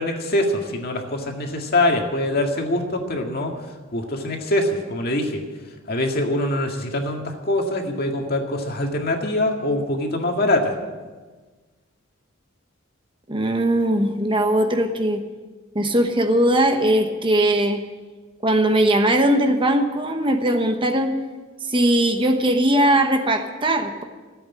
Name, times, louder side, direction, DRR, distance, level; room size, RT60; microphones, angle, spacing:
voice 1, 0.0-3.5 3.9-5.4 5.9-10.8, left 1 dB, 50° left, 2 dB, 2.0 m, -23 dB
voice 2, 13.3-15.2 15.7-17.8 18.4-21.1 21.7-24.0, right 1 dB, 25° right, 5 dB, 1.0 m, -19 dB
14.5 x 8.3 x 9.8 m, 1.3 s
head